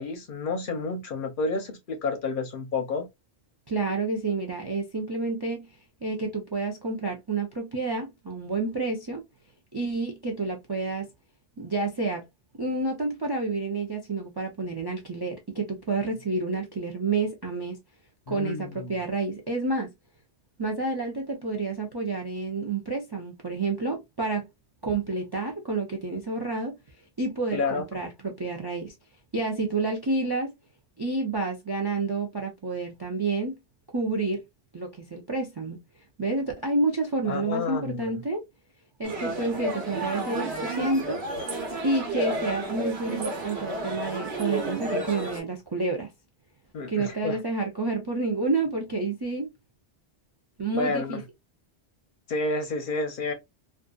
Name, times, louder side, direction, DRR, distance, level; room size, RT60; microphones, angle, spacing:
voice 1, 0.0-3.1 18.3-18.9 27.5-27.8 37.3-38.2 46.7-47.4 50.7-51.2 52.3-53.3, left 3 dB, 60° left, 0.6 m, -30 dB
voice 2, 3.7-5.7 6.0-9.2 9.7-11.1 11.6-12.2 12.6-17.8 18.3-19.9 20.6-24.5 24.8-26.8 27.2-28.9 29.3-30.5 31.0-33.5 33.9-34.4 34.7-35.8 36.2-38.5 39.0-41.2 41.8-46.1 46.9-49.5 50.6-51.2, right 3 dB, 40° right, 0.3 m, -29 dB
sound 1, 39.0-45.4, right 2 dB, 70° right, 1.2 m, -32 dB
2.5 x 2.4 x 2.2 m
omnidirectional pair, 1.2 m